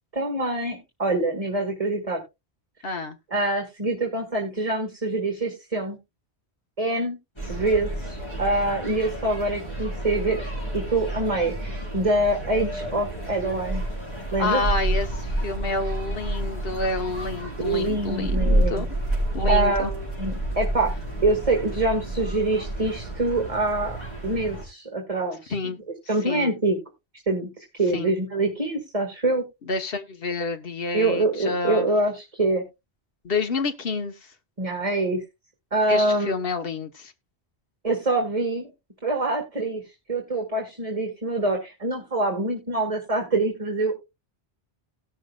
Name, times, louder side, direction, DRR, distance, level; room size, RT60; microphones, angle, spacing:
voice 1, 0.1-2.2 3.3-6.0 6.8-7.2 7.5-10.4 10.7-13.8 14.3-14.6 17.6-18.8 19.4-20.9 21.2-24.0 24.2-25.7 26.1-26.8 27.3-29.4 30.9-32.6 34.6-35.2 35.7-36.3 37.8-38.7 39.0-39.8 40.1-43.9, right 2 dB, 35° right, 1.9 m, -25 dB
voice 2, 2.8-3.2 14.4-18.9 19.3-19.9 25.5-25.8 26.2-26.5 27.9-28.1 29.7-31.9 33.2-34.1 35.9-37.1, left 3 dB, 60° left, 1.2 m, -28 dB
sound 1, 7.4-24.7, right 1 dB, 25° left, 4.4 m, -29 dB
18.0 x 6.3 x 2.3 m
omnidirectional pair, 1.1 m